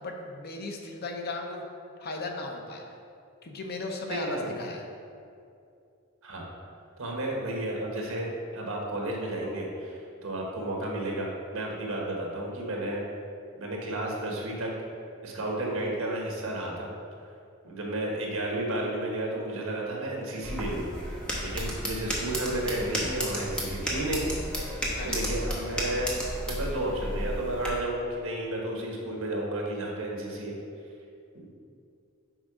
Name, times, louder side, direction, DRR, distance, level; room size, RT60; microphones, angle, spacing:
voice 1, 0.0-1.7 2.0-2.8 3.4-4.8 25.0-25.2, left 2 dB, 50° left, 2 dB, 0.8 m, -36 dB
voice 2, 4.1-4.4 6.2-6.4 7.0-13.0 13.5-14.7 15.2-16.9 17.6-20.9 21.4-24.3 25.0-26.1 26.5-30.6 31.3-31.5, right 1 dB, 70° right, -1 dB, 1.3 m, -32 dB
sound 1, 20.4-27.7, equal, 5° left, 1.1 m, -33 dB
6.3 x 4.7 x 4.9 m, 2.5 s
head